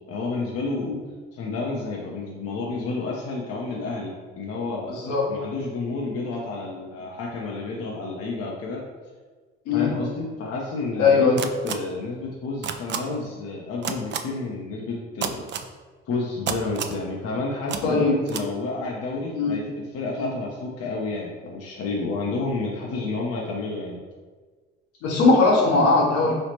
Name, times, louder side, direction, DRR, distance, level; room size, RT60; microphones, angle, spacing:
voice 1, 0.1-1.0 1.3-5.0 5.3-8.8 9.7-15.5 16.1-24.0, left 3 dB, 50° left, -2 dB, 0.7 m, -30 dB
voice 2, 4.9-5.3 9.7-9.9 11.0-11.4 17.8-18.2 19.3-19.6 25.0-26.3, left 3 dB, 70° left, -2 dB, 1.1 m, -19 dB
sound 1, 11.4-11.7 12.6-13.0 13.8-14.2 15.2-15.7 16.5-17.0 17.7-17.8 18.3-18.4, right 8 dB, 35° right, 0.4 m, -28 dB
3.9 x 3.2 x 2.9 m, 1.4 s
hypercardioid pair, 50°, 31 cm